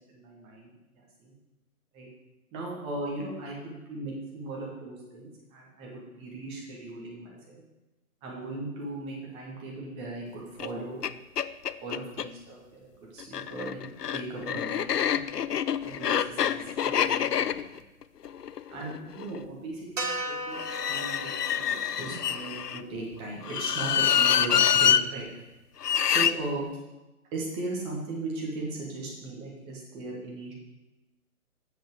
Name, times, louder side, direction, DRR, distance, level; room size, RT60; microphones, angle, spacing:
voice 1, 0.1-1.3 1.9-2.1 2.5-7.6 8.2-11.0 11.8-15.2 15.8-17.8 18.7-20.6 20.9-25.3 26.0-26.7 27.3-30.5, right 2 dB, 10° right, -3 dB, 1.3 m, -38 dB
sound 1, 10.6-10.7 11.0-11.1 11.4-12.3 13.2-19.4 20.5-22.8 23.4-25.0 25.8-26.3, left 9 dB, 85° left, 0.6 m, -26 dB
sound 2, 20.0-24.3, right 1 dB, 55° right, 2.2 m, -38 dB
9.1 x 7.4 x 4.6 m, 1.0 s
figure-of-eight pair, 145°, 46 cm